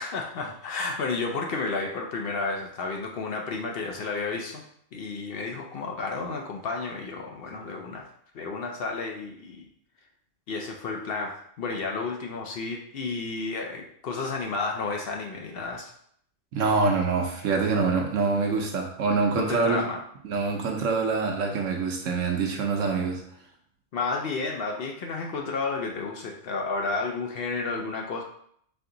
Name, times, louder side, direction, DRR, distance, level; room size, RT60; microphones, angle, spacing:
voice 1, 0.0-4.6 4.9-8.0 8.3-9.7 10.5-15.9 19.4-20.0 23.9-28.2, left 4 dB, 60° left, 2 dB, 0.6 m, -31 dB
voice 2, 16.5-19.9 20.2-23.2, right 4 dB, 70° right, 2 dB, 1.1 m, -25 dB
4.2 x 2.8 x 3.8 m, 0.67 s
omnidirectional pair, 1.4 m